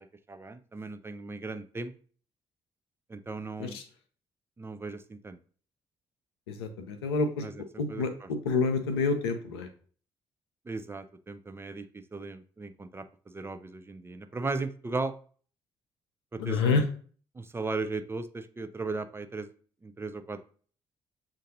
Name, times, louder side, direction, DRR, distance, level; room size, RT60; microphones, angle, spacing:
voice 1, 0.0-1.9 3.1-3.8 4.6-5.4 7.4-8.3 10.7-11.9 12.1-15.1 16.3-16.8 17.3-19.5 19.8-20.4, right 3 dB, 20° right, 9 dB, 0.4 m, -37 dB
voice 2, 6.5-7.4 7.8-9.7 16.4-16.8, left 4 dB, 75° left, 7 dB, 0.5 m, -28 dB
7.3 x 2.6 x 2.6 m, 0.43 s
figure-of-eight pair, 45°, 13 cm